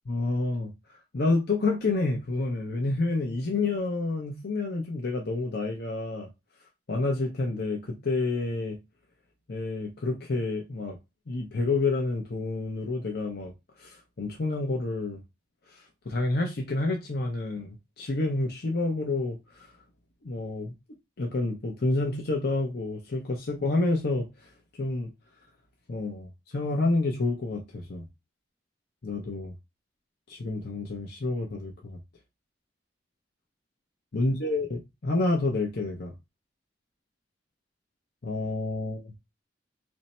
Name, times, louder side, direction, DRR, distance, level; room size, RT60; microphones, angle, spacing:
voice 1, 0.1-0.7 1.1-6.3 6.9-8.8 9.5-11.0 11.3-13.5 13.8-15.2 15.7-19.7 20.2-20.7 21.2-24.5 24.8-25.1 25.9-28.1 29.0-29.5 30.3-32.0 34.1-36.1 38.2-39.1, left 2 dB, 65° left, 0.7 m, -29 dB
3.1 x 2.7 x 4.2 m
head